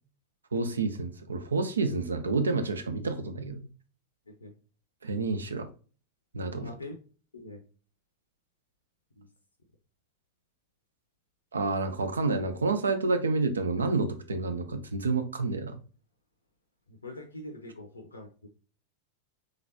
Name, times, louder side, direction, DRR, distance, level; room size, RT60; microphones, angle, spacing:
voice 1, 0.5-3.7 5.0-5.7 6.3-6.7 11.5-15.8, right 3 dB, 75° right, 0.5 m, -29 dB
voice 2, 6.5-7.0 7.3-7.6 9.2-9.3 16.9-18.5, left 1 dB, 75° left, 0.5 m, -44 dB
4.0 x 3.2 x 2.6 m
figure-of-eight pair, 90°, 0 cm